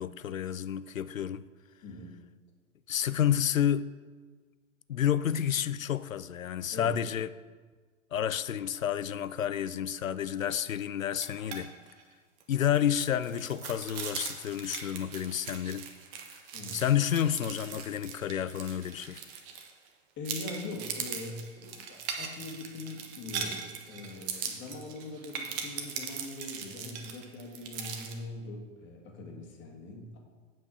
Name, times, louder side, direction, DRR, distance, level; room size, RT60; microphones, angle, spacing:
voice 1, 0.0-1.5 2.9-3.9 4.9-7.3 8.1-11.7 12.5-15.9 16.7-19.2, left 10 dB, 85° left, 0.5 m, -30 dB
voice 2, 1.8-2.2 6.7-7.0 16.5-16.8 19.4-19.6 20.2-30.2, left 2 dB, 30° left, 1.8 m, -42 dB
sound 1, 11.1-11.6 11.9-12.0 12.4-19.9 20.2-28.1, right 7 dB, 45° right, 1.4 m, -40 dB
8.9 x 5.3 x 6.1 m
figure-of-eight pair, 105°, 39 cm